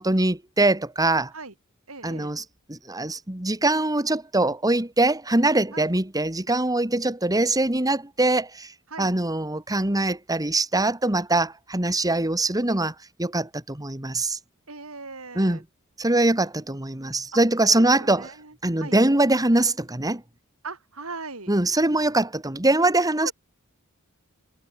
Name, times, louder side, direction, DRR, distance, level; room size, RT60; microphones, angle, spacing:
voice 1, 0.0-1.3 2.0-2.4 2.7-8.7 9.0-12.9 13.2-14.4 15.4-15.6 16.0-18.3 18.6-20.2 21.5-23.3, right 2 dB, 15° right, 2.0 m, -23 dB
voice 2, 1.9-2.3 5.7-5.9 8.9-9.1 14.7-15.6 17.3-19.0 20.6-21.5 23.2-23.3, right 3 dB, 75° right, 5.0 m, -39 dB
head